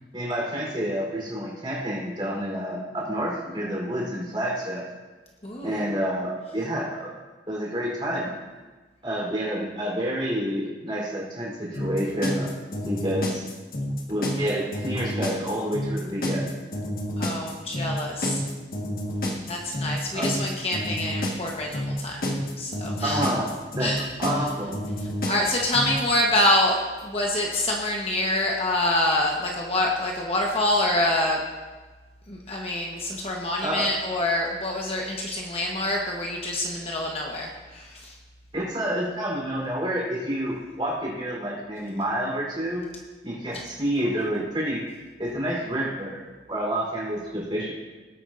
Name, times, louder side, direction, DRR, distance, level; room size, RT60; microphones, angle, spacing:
voice 1, 0.1-4.8 5.6-7.1 7.5-8.4 9.0-12.5 12.9-13.5 14.1-16.5 19.8-20.3 23.0-24.8 33.6-33.9 38.5-42.8 43.2-44.8 45.2-46.2 46.5-47.7, right 1 dB, 25° right, -5 dB, 3.6 m, -29 dB
voice 2, 5.4-5.8 17.2-18.4 19.5-22.2 22.6-23.3 23.8-24.0 25.3-31.4 32.3-38.1 43.5-43.6, left 1 dB, 35° left, -1 dB, 1.1 m, -26 dB
sound 1, 11.7-26.0, equal, 50° left, 1.5 m, -29 dB
18.0 x 9.0 x 2.6 m, 1.3 s
head